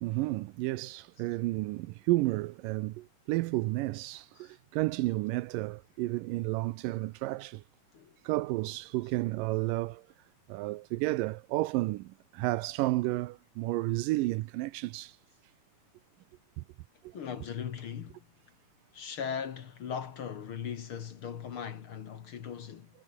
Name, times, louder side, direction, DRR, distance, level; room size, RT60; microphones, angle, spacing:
voice 1, 0.0-7.6 8.2-10.1 10.5-15.2 16.6-16.7 17.0-17.1, right 19 dB, 85° right, 2.3 m, -32 dB
voice 2, 17.1-18.3 18.9-22.9, left 7 dB, 50° left, 1.7 m, -39 dB
omnidirectional pair, 3.9 m